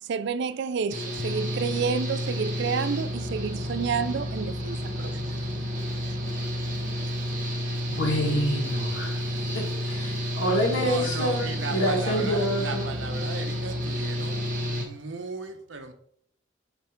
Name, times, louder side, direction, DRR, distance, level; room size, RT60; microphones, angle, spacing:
voice 1, 0.0-5.5, right 6 dB, 65° right, 0.4 m, -30 dB
Engine / Mechanical fan, 0.9-14.8, equal, 45° right, 1.7 m, -30 dB
voice 2, 7.9-9.2 9.5-12.9, equal, 70° left, 1.9 m, -27 dB
voice 3, 10.8-15.9, right 4 dB, 80° right, 0.8 m, -36 dB
7.2 x 3.3 x 4.4 m
head